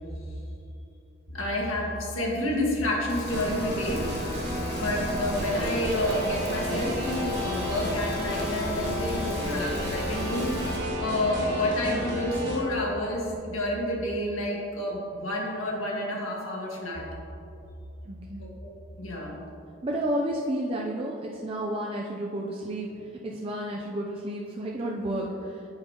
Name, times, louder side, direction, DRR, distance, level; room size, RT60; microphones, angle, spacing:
voice 1, 1.3-4.0 4.8-10.7 11.0-17.0 18.4-18.7 19.0-19.4 24.6-24.7, left 1 dB, 85° left, -2 dB, 1.6 m, -29 dB
Rain, 3.1-10.8, left 1 dB, 55° left, 1.1 m, -37 dB
sound 1, 3.3-12.6, equal, 60° right, 1.9 m, -32 dB
voice 2, 18.1-18.5 19.8-25.7, right 1 dB, 30° right, -2 dB, 0.5 m, -31 dB
9.2 x 7.8 x 2.9 m, 2.8 s
head